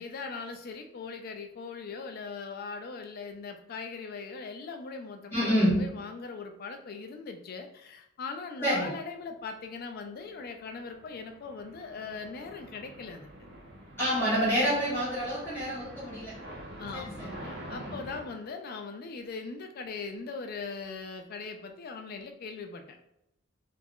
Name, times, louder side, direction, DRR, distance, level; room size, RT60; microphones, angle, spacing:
voice 1, 0.0-13.3 16.8-23.0, left 4 dB, 50° left, 5 dB, 0.3 m, -40 dB
voice 2, 5.3-5.8 8.6-8.9 14.0-16.4 16.9-17.9, equal, 10° left, -11 dB, 0.8 m, -28 dB
sound 1, 10.4-18.2, right 1 dB, 50° right, 0.7 m, -46 dB
2.4 x 2.1 x 3.5 m, 0.83 s
head